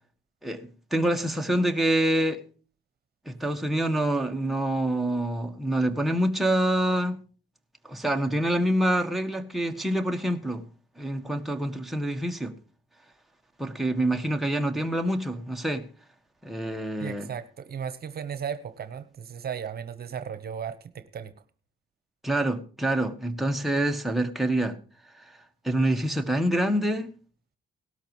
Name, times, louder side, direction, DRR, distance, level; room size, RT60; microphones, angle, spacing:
voice 1, 0.4-2.4 3.2-7.2 7.8-10.6 11.0-12.5 13.6-15.9 16.4-17.3 22.2-24.8 25.6-27.1, right 1 dB, ahead, 1.6 m, -26 dB
voice 2, 17.0-21.4, right 7 dB, 50° right, 1.1 m, -35 dB
18.0 x 13.0 x 3.1 m
cardioid pair, 90°, 20 cm